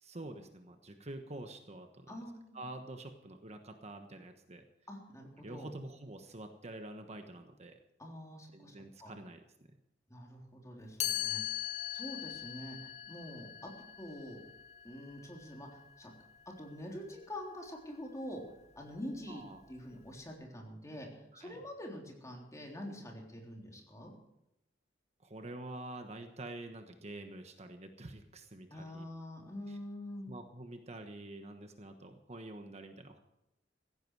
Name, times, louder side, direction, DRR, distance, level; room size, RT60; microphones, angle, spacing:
voice 1, 0.0-2.2 2.5-4.6 5.4-7.8 8.5-9.4 19.3-19.6 21.3-21.6 25.2-29.0 29.7-29.8 30.3-33.2, right 2 dB, 35° right, 6 dB, 1.2 m, -47 dB
voice 2, 2.1-2.6 4.9-5.7 8.0-9.2 10.1-13.7 14.0-14.4 14.8-16.1 16.6-18.4 18.8-24.1 28.7-30.3, left 1 dB, 15° left, 0 dB, 3.6 m, -46 dB
Chime, 11.0-16.9, left 13 dB, 40° left, 1.9 m, -41 dB
16.0 x 15.0 x 4.8 m, 0.88 s
head